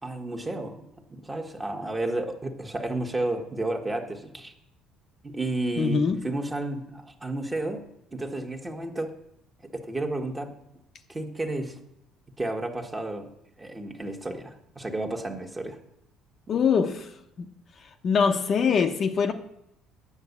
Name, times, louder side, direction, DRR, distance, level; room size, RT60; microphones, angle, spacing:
voice 1, 0.0-4.5 5.2-7.8 8.1-9.2 9.7-10.5 11.1-11.8 12.4-13.3 13.6-15.8, right 2 dB, 15° right, 1.5 m, -32 dB
voice 2, 5.8-6.2 16.5-17.1 17.4-17.5 18.0-19.3, left 6 dB, 45° left, 0.8 m, -23 dB
9.7 x 6.2 x 8.2 m
cardioid pair, 110°, 0 cm